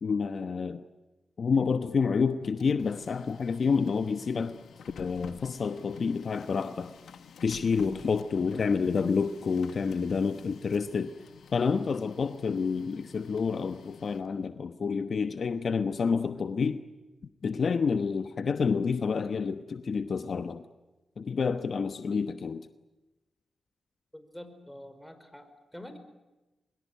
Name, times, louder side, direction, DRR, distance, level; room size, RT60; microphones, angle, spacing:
voice 1, 0.0-0.8 1.4-4.6 5.0-6.9 7.4-11.1 11.5-16.8 17.4-20.6 21.2-22.7, left 5 dB, 65° left, 10 dB, 1.1 m, -28 dB
Printer, 2.4-14.5, left 7 dB, 80° left, 1.5 m, -50 dB
voice 2, 24.1-26.0, left 1 dB, 10° left, 9 dB, 5.1 m, -46 dB
23.5 x 21.5 x 9.4 m, 1.1 s
cardioid pair, 50°, 0 cm